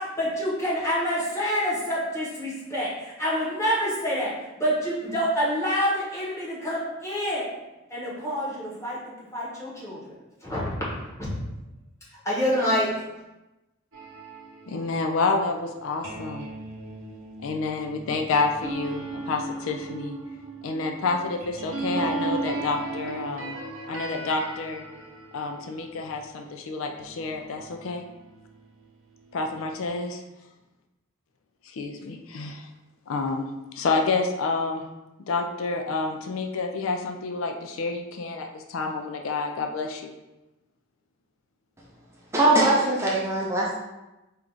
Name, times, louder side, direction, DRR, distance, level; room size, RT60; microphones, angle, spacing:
voice 1, 0.0-7.5 7.9-10.1 10.4-10.7 11.2-11.3 12.2-12.9, equal, 15° left, -7 dB, 1.1 m, -27 dB
sound 1, 13.9-26.5 26.9-29.9, right 3 dB, 65° right, 0.8 m, -37 dB
voice 2, 14.7-16.5 17.4-20.2 20.6-23.6 23.9-24.8 25.3-28.0 29.3-30.2 31.6-32.7 33.1-33.5 33.7-34.9 35.3-40.1, left 3 dB, 75° left, 4 dB, 0.4 m, -29 dB
voice 3, 42.3-43.8, right 2 dB, 15° right, -4 dB, 0.5 m, -21 dB
4.4 x 2.4 x 3.8 m, 1.0 s
head